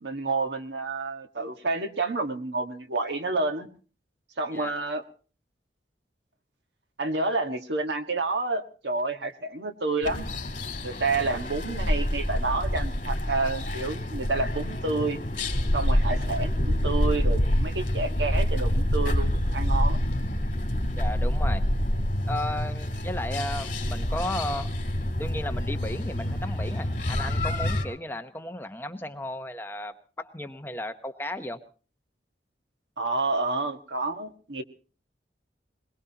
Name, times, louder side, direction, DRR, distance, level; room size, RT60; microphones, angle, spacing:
voice 1, 0.0-3.7 4.4-5.0 7.0-10.3 10.8-15.2 15.7-20.0 33.0-34.6, right 3 dB, 80° right, 6 dB, 1.5 m, -29 dB
sound 1, 10.0-27.9, left 1 dB, 45° left, 2.7 m, -27 dB
voice 2, 20.9-21.6 22.3-24.7 25.2-31.6, left 1 dB, 10° left, 7 dB, 0.9 m, -34 dB
21.5 x 21.5 x 2.9 m, 0.38 s
head